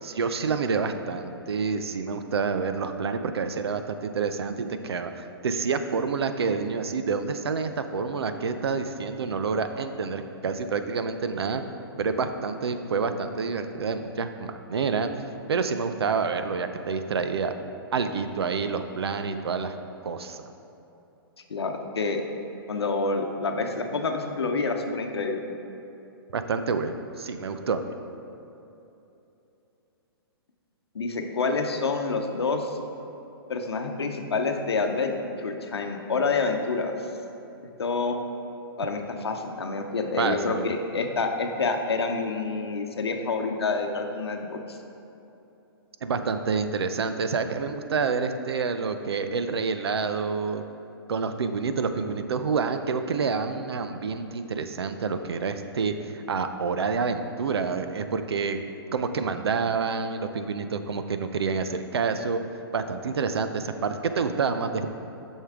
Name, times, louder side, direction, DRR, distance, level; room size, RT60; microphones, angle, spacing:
voice 1, 0.0-11.6 12.0-15.1 15.5-17.5 17.9-19.8 20.0-20.4 26.3-27.8 40.2-40.6 46.0-50.6 51.1-58.6 58.9-62.4 62.7-64.9, right 5 dB, 80° right, 9 dB, 0.6 m, -28 dB
voice 2, 21.5-22.2 22.7-25.4 30.9-32.8 33.5-35.1 35.4-36.9 37.8-38.2 38.8-44.6, left 4 dB, 85° left, 4 dB, 0.8 m, -27 dB
8.2 x 6.4 x 3.6 m, 2.9 s
hypercardioid pair, 135°, 13 cm